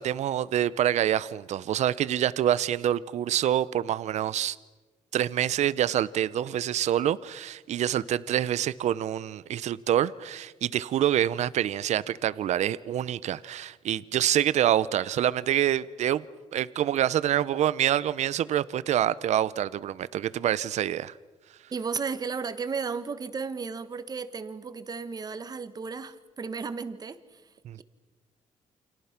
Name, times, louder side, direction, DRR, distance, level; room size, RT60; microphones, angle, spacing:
voice 1, 0.0-4.6 5.1-16.2 16.5-21.2 27.6-27.8, right 11 dB, 65° right, 0.8 m, -26 dB
voice 2, 21.7-27.4, right 5 dB, 30° right, 1.4 m, -34 dB
29.5 x 27.0 x 6.0 m
cardioid pair, 130°, 12 cm